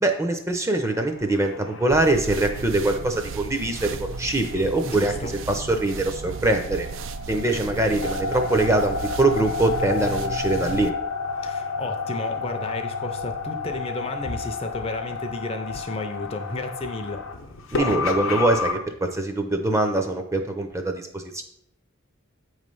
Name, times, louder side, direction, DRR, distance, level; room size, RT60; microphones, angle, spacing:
voice 1, 0.0-6.9 7.3-10.9 17.7-21.4, right 2 dB, 15° right, 5 dB, 0.5 m, -23 dB
sound 1, 0.7-18.7, left 4 dB, 70° left, 0.8 m, -32 dB
sound 2, 1.9-10.9, right 5 dB, 65° right, 0.4 m, -35 dB
voice 2, 4.8-5.4 11.4-17.2, left 2 dB, 30° left, 6 dB, 0.5 m, -32 dB
8.0 x 3.2 x 5.3 m, 0.72 s
head